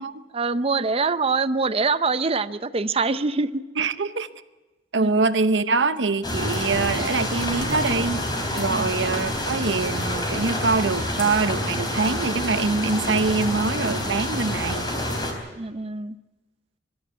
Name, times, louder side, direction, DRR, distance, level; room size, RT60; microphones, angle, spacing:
voice 1, 0.3-3.6 5.0-5.1 8.7-8.9 15.6-16.2, right 4 dB, 35° right, 13 dB, 0.7 m, -24 dB
voice 2, 3.8-4.3 4.9-8.2 8.5-14.9, right 4 dB, 90° right, 12 dB, 0.9 m, -24 dB
sound 1, 6.2-15.3, left 1 dB, 25° left, 3.8 m, -27 dB
22.5 x 13.0 x 9.4 m, 1.1 s
head